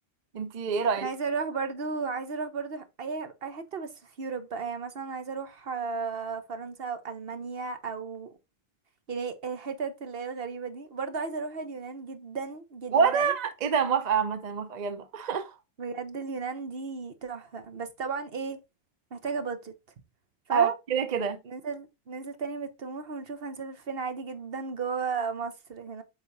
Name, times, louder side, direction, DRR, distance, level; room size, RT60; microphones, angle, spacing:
voice 1, 0.3-1.1 12.9-15.5 20.5-21.4, right 6 dB, 45° right, 0.7 m, -26 dB
voice 2, 1.0-8.3 9.1-13.3 15.8-18.6 19.1-19.7 20.5-20.8 21.4-26.0, right 5 dB, 65° right, 1.3 m, -34 dB
8.5 x 5.1 x 2.7 m
omnidirectional pair, 1.0 m